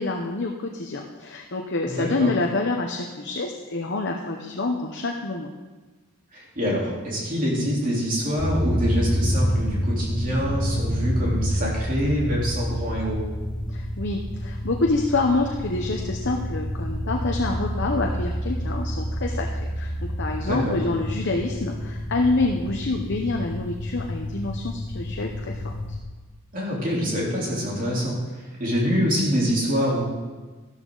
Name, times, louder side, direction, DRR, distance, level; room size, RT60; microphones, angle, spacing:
voice 1, 0.0-5.5 13.7-19.9 20.2-25.7, left 2 dB, 50° left, 1 dB, 0.8 m, -27 dB
voice 2, 1.8-2.3 6.3-13.2 20.4-20.8 26.5-28.2 28.6-30.0, equal, 40° right, -4 dB, 3.6 m, -25 dB
sound 1, 8.4-26.0, equal, 85° left, 1.7 m, -28 dB
12.5 x 12.5 x 3.9 m, 1.3 s
head